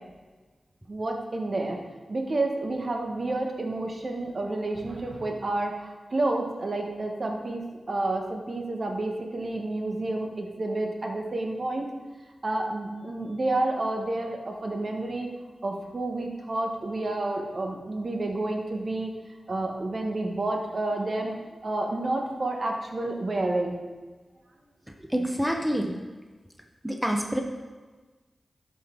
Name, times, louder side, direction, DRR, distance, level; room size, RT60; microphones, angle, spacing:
voice 1, 0.9-1.8 2.1-7.6 7.9-11.9 12.4-15.3 15.6-19.1 19.5-21.3 21.6-23.8, right 2 dB, 55° right, 2 dB, 1.4 m, -29 dB
voice 2, 25.1-25.9 26.8-27.4, equal, 10° right, 2 dB, 1.0 m, -26 dB
12.0 x 5.3 x 3.9 m, 1.3 s
cardioid pair, 45°, 0 cm